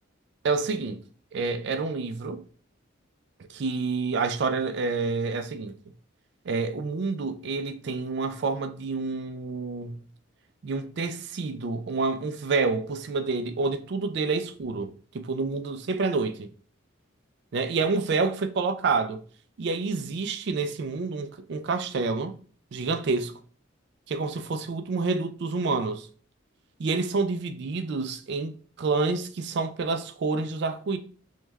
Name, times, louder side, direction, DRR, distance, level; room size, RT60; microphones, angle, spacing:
voice 1, 0.4-1.0 1.3-2.4 3.5-5.8 6.5-10.0 10.6-16.5 17.5-19.2 19.6-22.4 22.7-23.3 24.1-26.1 26.8-28.5 28.8-31.0, right 4 dB, 55° right, 0.4 m, -28 dB
3.3 x 3.1 x 2.2 m
head